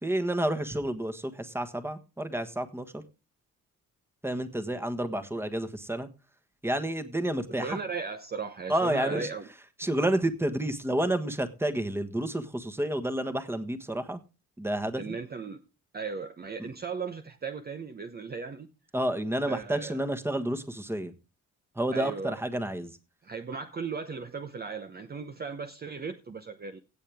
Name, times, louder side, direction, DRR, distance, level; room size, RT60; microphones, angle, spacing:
voice 1, 0.0-3.0 4.2-6.1 6.6-7.8 8.7-9.3 9.8-14.2 14.6-15.2 18.9-21.1 21.7-22.9, right 1 dB, 10° right, 1.5 m, -30 dB
voice 2, 7.5-9.5 15.0-15.6 15.9-18.7 19.5-20.0 21.9-22.4 23.2-26.8, right 5 dB, 30° right, 0.9 m, -37 dB
17.0 x 6.7 x 3.6 m
cardioid pair, 90°, 30 cm